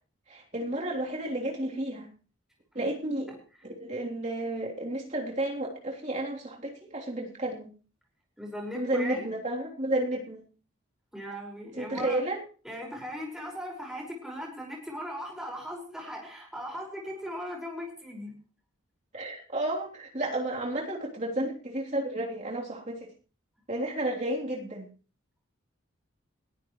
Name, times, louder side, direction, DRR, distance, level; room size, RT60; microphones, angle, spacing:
voice 1, 0.3-2.1 2.8-3.3 3.7-7.7 8.7-10.4 11.8-12.4 19.1-23.1 23.7-24.9, right 1 dB, 35° right, -1 dB, 3.4 m, -32 dB
voice 2, 8.4-9.3 11.1-12.2 12.6-18.3, equal, 5° right, -2 dB, 5.3 m, -38 dB
21.0 x 14.0 x 3.2 m, 0.37 s
head